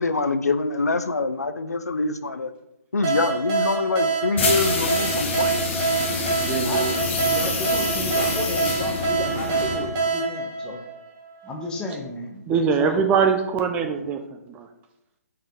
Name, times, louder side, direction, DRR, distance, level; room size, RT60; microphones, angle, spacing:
voice 1, 0.0-2.5 2.9-5.6, left 3 dB, 85° left, 11 dB, 0.5 m, -25 dB
sound 1, 3.0-11.5, right 4 dB, 30° right, 1.5 m, -26 dB
sound 2, 4.4-10.0, left 3 dB, 45° left, 1.3 m, -27 dB
voice 2, 6.4-7.0 12.5-14.2 14.5-14.7, right 6 dB, 15° right, 6 dB, 0.3 m, -23 dB
voice 3, 7.2-10.8 11.4-13.0, left 2 dB, 10° left, 1 dB, 0.8 m, -32 dB
5.5 x 5.0 x 3.5 m, 0.88 s
figure-of-eight pair, 140°, 8 cm